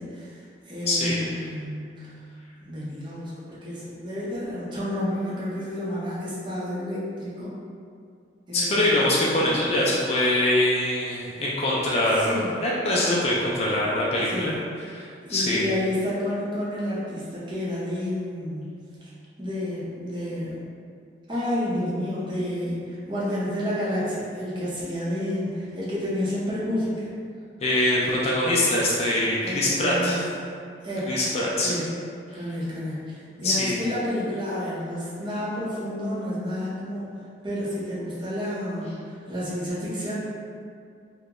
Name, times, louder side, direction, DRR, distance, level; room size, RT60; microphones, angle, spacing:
voice 1, 0.0-2.2 2.7-7.5 8.5-9.0 12.1-12.6 14.3-14.7 15.2-19.1 19.4-20.7 21.3-27.1 29.4-30.2 30.8-31.2 31.6-32.0 32.3-37.2 37.4-40.2, left 1 dB, 25° right, -8 dB, 0.6 m, -30 dB
voice 2, 0.9-1.2 8.5-14.5 14.9-15.6 27.6-30.2 31.1-31.7 33.4-33.8, left 1 dB, 35° left, -5 dB, 0.4 m, -23 dB
2.9 x 2.1 x 3.6 m, 2.3 s
head